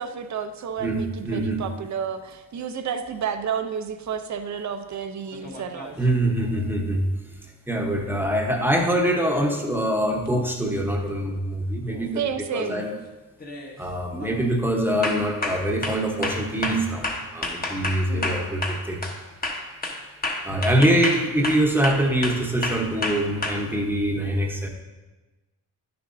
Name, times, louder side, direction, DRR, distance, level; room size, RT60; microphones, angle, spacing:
voice 1, 0.0-6.0 12.1-12.8 18.1-18.5, right 7 dB, 55° right, 8 dB, 0.7 m, -31 dB
voice 2, 0.8-1.6 6.0-7.0 7.7-12.9 13.8-19.0 20.4-24.7, right 1 dB, 5° right, 1 dB, 1.0 m, -24 dB
sound 1, 5.3-6.0 10.3-10.4 11.9-12.2 12.6-12.9 13.4-13.8 14.2-14.4 15.0-19.2 19.4-23.5, left 2 dB, 25° left, 1.1 m, -30 dB
10.5 x 6.8 x 2.7 m, 1.1 s
cardioid pair, 120°, 35 cm